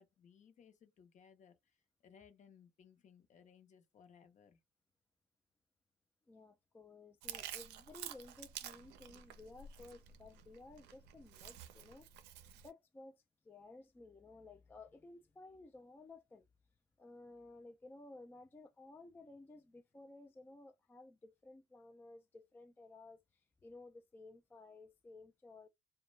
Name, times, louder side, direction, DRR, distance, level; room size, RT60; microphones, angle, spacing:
voice 1, 0.0-4.6, left 7 dB, 45° left, 0.7 m, -63 dB
voice 2, 6.3-12.3 12.6-16.5 17.0-25.7, left 2 dB, 10° left, 0.3 m, -56 dB
Chewing mastication, 7.2-12.7, right 10 dB, 85° right, 0.5 m, -50 dB
2.2 x 2.1 x 3.1 m
cardioid pair, 110°, 17 cm